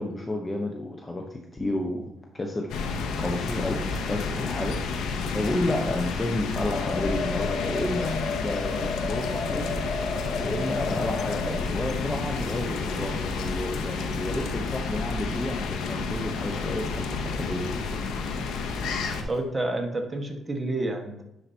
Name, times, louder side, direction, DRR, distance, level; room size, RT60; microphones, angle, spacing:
voice 1, 0.0-2.0 2.3-9.7 10.3-17.9, left 1 dB, 20° left, 1 dB, 1.0 m, -31 dB
sound 1, 2.7-19.2, left 4 dB, 85° left, 0.9 m, -30 dB
sound 2, 6.6-11.6, left 5 dB, 60° left, 1.7 m, -33 dB
sound 3, 9.7-19.4, right 5 dB, 65° right, 2.2 m, -46 dB
voice 2, 19.2-21.2, right 2 dB, 20° right, 3 dB, 1.5 m, -29 dB
10.5 x 4.9 x 2.9 m, 0.89 s
cardioid pair, 90°, 0 cm